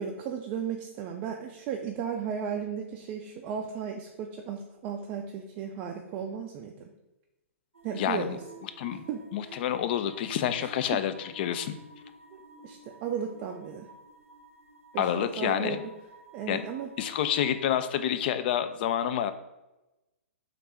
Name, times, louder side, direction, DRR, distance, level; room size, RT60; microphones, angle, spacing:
voice 1, 0.0-6.9 7.8-8.4 9.1-9.6 10.6-11.0 12.3-13.9 14.9-15.8 16.3-16.9, right 7 dB, 30° right, 2 dB, 0.3 m, -35 dB
sound 1, 7.7-17.7, right 3 dB, 85° right, 0.6 m, -52 dB
voice 2, 7.9-8.4 8.6-9.0 9.3-11.8 15.0-15.8 16.5-16.6 17.0-19.3, left 10 dB, 45° left, 10 dB, 0.3 m, -28 dB
3.3 x 2.5 x 4.2 m, 1.0 s
figure-of-eight pair, 120°, 7 cm